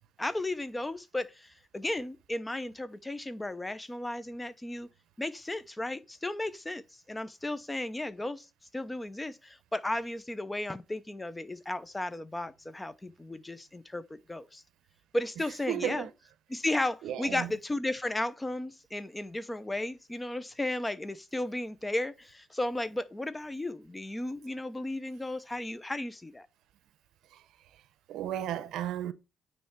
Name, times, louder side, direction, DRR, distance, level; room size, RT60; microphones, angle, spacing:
voice 1, 0.2-1.5 1.7-4.9 5.2-6.8 7.1-8.5 8.7-14.6 15.1-16.1 16.5-26.5, left 1 dB, 15° left, 0.8 m, -34 dB
voice 2, 15.7-16.1 17.0-17.5 27.3-27.4 27.7-27.8 28.1-29.1, right 11 dB, 85° right, 0.7 m, -34 dB
9.2 x 3.4 x 4.6 m
cardioid pair, 90°, 0 cm